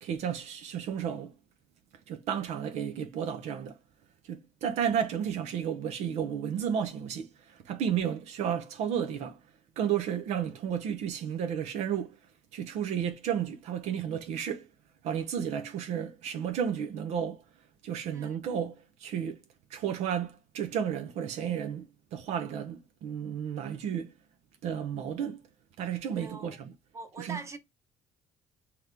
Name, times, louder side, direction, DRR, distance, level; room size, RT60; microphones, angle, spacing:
voice 1, 0.0-1.3 2.1-3.8 4.2-9.4 9.8-12.2 12.5-14.7 15.0-17.4 17.8-19.4 19.7-21.9 22.1-24.1 24.6-25.4 25.8-26.7 27.2-27.4, right 8 dB, 70° right, 0.6 m, -32 dB
voice 2, 26.1-26.6 26.9-27.6, right 4 dB, 25° right, 0.9 m, -42 dB
3.3 x 2.9 x 3.7 m
cardioid pair, 135°, 12 cm